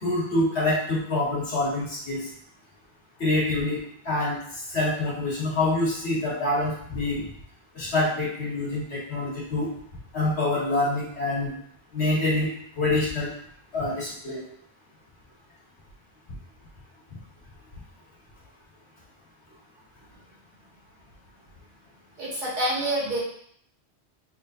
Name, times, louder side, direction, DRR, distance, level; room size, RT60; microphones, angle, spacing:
voice 1, 0.0-2.3 3.2-3.8 4.1-7.3 7.8-9.7 10.1-11.5 11.9-12.5 12.8-13.3 13.7-14.4, left 2 dB, 70° left, -7 dB, 1.8 m, -26 dB
voice 2, 22.2-23.2, right 1 dB, 45° right, -8 dB, 1.6 m, -27 dB
4.1 x 3.6 x 2.6 m, 0.66 s
omnidirectional pair, 1.1 m